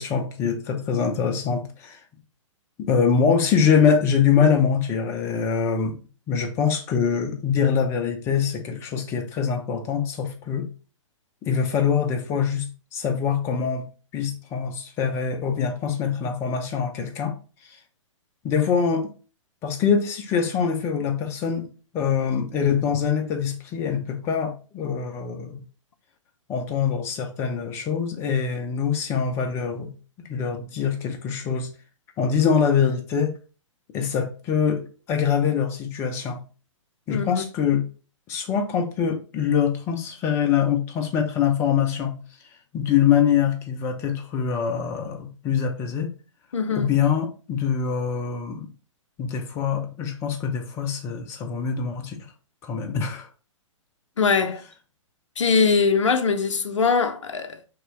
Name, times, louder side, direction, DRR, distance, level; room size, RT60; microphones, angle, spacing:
voice 1, 0.0-2.0 2.8-6.0 6.3-10.7 11.4-13.9 14.1-17.4 17.6-17.8 18.4-19.1 19.6-21.7 21.9-25.6 26.5-29.9 30.3-31.7 32.2-33.3 33.9-36.4 37.1-37.8 38.3-42.2 42.7-46.1 46.7-48.7 49.2-52.2 52.6-53.3, left 7 dB, 15° left, 0.4 m, -24 dB
voice 2, 37.1-37.4 46.5-46.9 54.2-54.6 55.4-57.6, left 5 dB, 65° left, 0.5 m, -22 dB
2.9 x 2.8 x 2.9 m
figure-of-eight pair, 120°, 17 cm